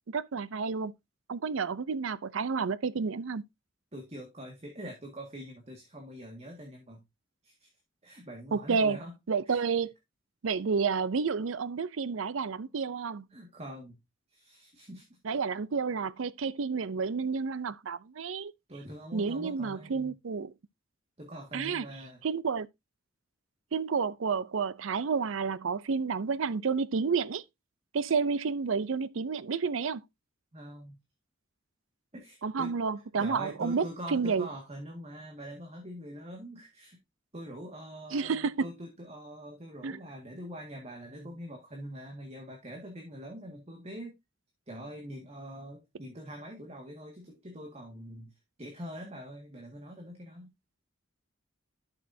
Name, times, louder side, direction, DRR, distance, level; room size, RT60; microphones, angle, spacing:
voice 1, 0.1-0.9 1.3-3.4 8.5-9.0 9.3-9.9 10.4-13.3 15.2-18.5 19.1-20.5 21.5-21.8 22.2-22.7 23.7-27.4 27.9-30.0 32.4-34.5 38.1-38.6 39.8-40.0, right 5 dB, 70° right, 0.5 m, -30 dB
voice 2, 3.9-7.0 7.4-7.7 8.0-9.2 9.5-9.6 13.3-14.0 14.3-15.2 18.7-20.2 21.2-22.2 30.5-31.0 32.1-32.8 33.2-37.0 37.3-44.1 44.7-48.3 48.6-50.5, equal, 30° right, 1.8 m, -44 dB
11.5 x 6.5 x 2.7 m
head